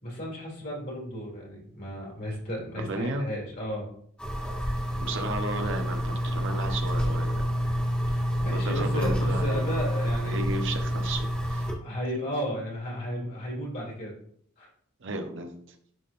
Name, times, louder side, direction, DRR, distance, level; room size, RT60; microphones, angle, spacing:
voice 1, 0.0-3.9 8.1-10.4 11.8-14.1 14.6-14.7, equal, 45° left, -3 dB, 2.3 m, -34 dB
voice 2, 2.9-3.3 5.0-7.5 8.5-9.7 10.0-11.7 15.0-15.8, right 2 dB, 65° right, 5 dB, 0.9 m, -34 dB
sound 1, 4.2-11.7, equal, 5° left, 1.5 m, -28 dB
10.5 x 3.7 x 2.6 m, 0.63 s
head